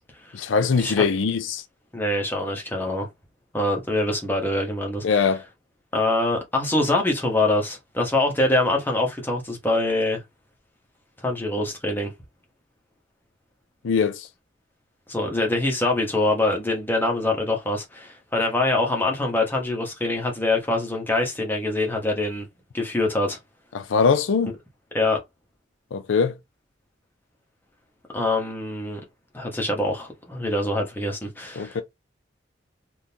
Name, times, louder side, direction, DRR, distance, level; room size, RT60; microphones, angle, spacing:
voice 1, 0.3-1.6 5.0-5.4 13.8-14.3 23.7-24.5 25.9-26.3 31.6-31.8, left 5 dB, 85° left, 0.5 m, -22 dB
voice 2, 1.9-3.1 3.5-5.3 5.9-10.2 11.2-12.1 15.1-22.4 22.7-23.4 24.9-25.2 28.1-29.0 29.3-31.8, left 2 dB, 10° left, 1.0 m, -24 dB
3.6 x 2.6 x 2.8 m
head